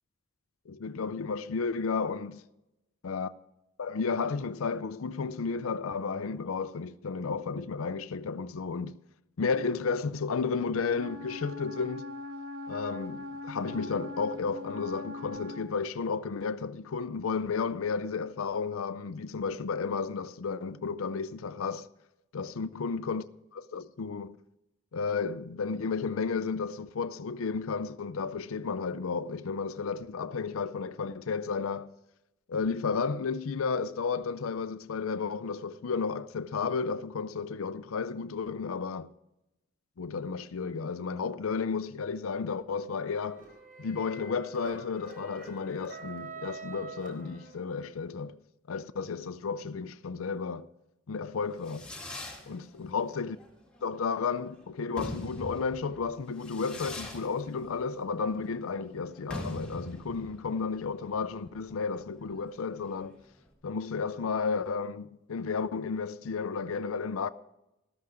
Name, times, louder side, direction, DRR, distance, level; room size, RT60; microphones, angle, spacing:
voice 1, 0.7-2.4 3.0-3.3 3.8-9.0 9.4-12.1 12.7-21.9 22.3-23.2 23.5-24.4 24.9-31.9 32.5-39.1 40.0-43.4 43.8-48.4 48.7-50.7 51.1-51.9 52.5-53.4 53.8-63.2 63.6-67.3, left 5 dB, 85° left, 0.5 m, -33 dB
Wind instrument woodwind instrument, 10.9-15.7, left 2 dB, 75° right, 1.1 m, -41 dB
sound 1, 43.0-47.9, right 4 dB, 40° right, 3.9 m, -46 dB
Fireworks, 51.3-63.5, left 1 dB, 5° left, 2.2 m, -44 dB
13.5 x 13.5 x 3.6 m
head